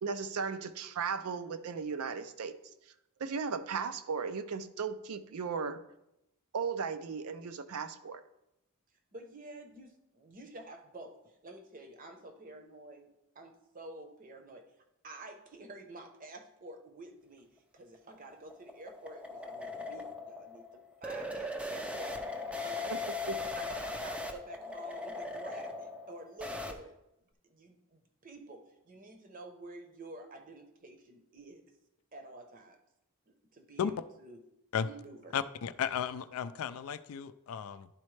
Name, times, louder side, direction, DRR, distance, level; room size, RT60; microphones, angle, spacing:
voice 1, 0.0-2.6 3.2-5.8 6.5-8.2 22.9-23.0 23.3-23.4, right 5 dB, 75° right, 11 dB, 0.4 m, -36 dB
voice 2, 9.1-13.1 13.3-14.6 15.0-20.6 21.0-22.2 22.6-23.1 23.6-26.9 27.4-31.6 32.1-32.8 33.3-34.4 34.8-35.4, right 2 dB, 35° right, 5 dB, 0.8 m, -49 dB
sound 1, 17.8-26.7, left 2 dB, 5° right, 0.4 m, -39 dB
voice 3, 35.3-37.9, left 7 dB, 70° left, 14 dB, 0.3 m, -34 dB
11.0 x 4.2 x 3.2 m, 0.87 s
head